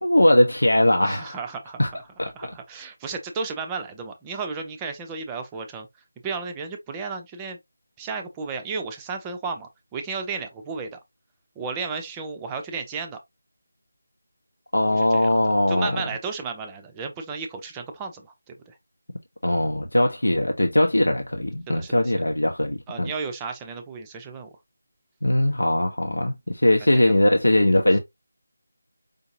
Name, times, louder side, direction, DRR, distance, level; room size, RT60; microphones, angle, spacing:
voice 1, 0.0-1.4 1.8-1.9 2.2-2.3 14.7-15.9 19.4-23.1 25.2-28.0, left 1 dB, 75° left, 0.8 m, -20 dB
voice 2, 1.0-2.1 2.3-5.9 6.2-7.6 8.0-11.0 11.6-13.2 15.0-15.3 15.7-18.8 21.7-22.1 22.9-24.5 27.0-27.1 27.9-28.0, right 5 dB, 10° right, 0.6 m, -33 dB
5.1 x 2.7 x 2.7 m
figure-of-eight pair, 160°, 0 cm